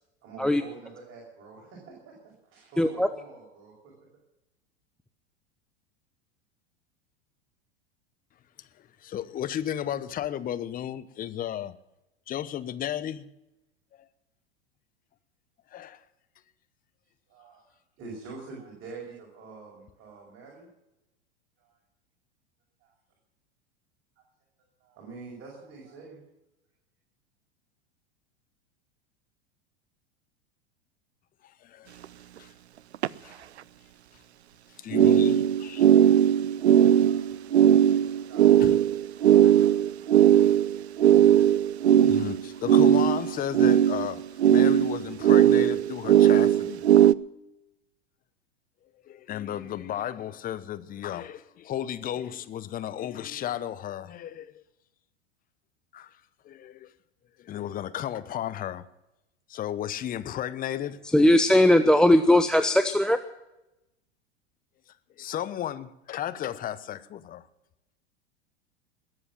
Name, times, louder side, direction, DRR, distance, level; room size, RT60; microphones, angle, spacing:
voice 1, 0.2-2.2 2.4-3.7 17.3-17.6 18.0-20.7 21.6-21.8 22.8-22.9 24.8-26.2 37.0-38.7 39.5-40.3, right 4 dB, 40° right, 6.0 m, -46 dB
voice 2, 2.8-3.1 61.1-63.2, left 1 dB, ahead, 0.6 m, -19 dB
voice 3, 9.0-11.8 12.3-13.3 13.9-14.1 15.7-16.0 31.4-31.9 32.4-32.5 33.2-33.4 34.8-35.8 38.6-38.8 42.0-46.8 49.0-54.6 55.9-56.2 56.4-56.9 57.4-58.9 59.5-61.0 65.2-67.5, left 11 dB, 25° left, 0.9 m, -34 dB
sound 1, 32.0-32.1 32.9-33.1 34.9-47.1, right 10 dB, 80° right, 0.5 m, -19 dB
20.5 x 8.0 x 7.5 m
hypercardioid pair, 90°, 32 cm